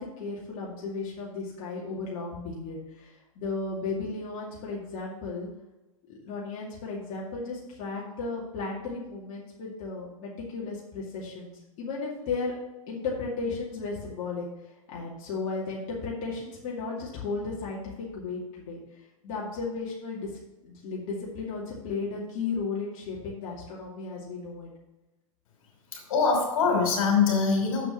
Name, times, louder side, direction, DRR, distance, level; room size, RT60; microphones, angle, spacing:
voice 1, 0.0-5.5 6.1-11.5 11.8-12.5 12.9-14.5 14.9-18.8 19.2-20.3 20.6-24.7, left 4 dB, 45° left, -5 dB, 2.5 m, -34 dB
voice 2, 25.9-27.9, left 5 dB, 70° left, 1 dB, 3.2 m, -23 dB
7.2 x 5.9 x 7.0 m, 1.0 s
hypercardioid pair, 110°, 18 cm